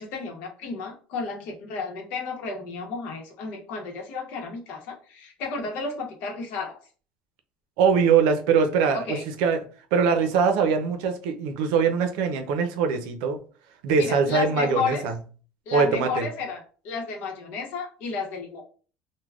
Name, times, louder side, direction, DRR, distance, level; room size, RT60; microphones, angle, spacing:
voice 1, 0.0-6.8 8.9-9.2 14.0-15.0 15.7-18.6, left 5 dB, 60° left, 0.8 m, -32 dB
voice 2, 7.8-9.7 9.9-13.4 13.8-15.1 15.7-16.3, right 6 dB, 85° right, 0.5 m, -22 dB
3.3 x 2.2 x 2.3 m
cardioid pair, 170°, 4 cm